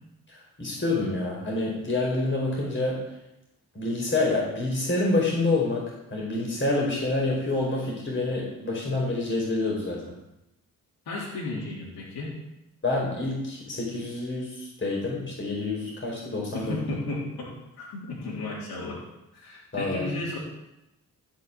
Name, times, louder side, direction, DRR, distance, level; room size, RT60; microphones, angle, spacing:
voice 1, 0.3-3.0 3.7-10.0 12.8-16.8 19.7-20.1, left 2 dB, 30° left, -3 dB, 4.8 m, -27 dB
voice 2, 11.1-12.3 16.5-19.0 19.3-20.4, left 2 dB, 75° left, -6 dB, 3.5 m, -34 dB
14.5 x 6.0 x 7.8 m, 0.91 s
cardioid pair, 60°, 37 cm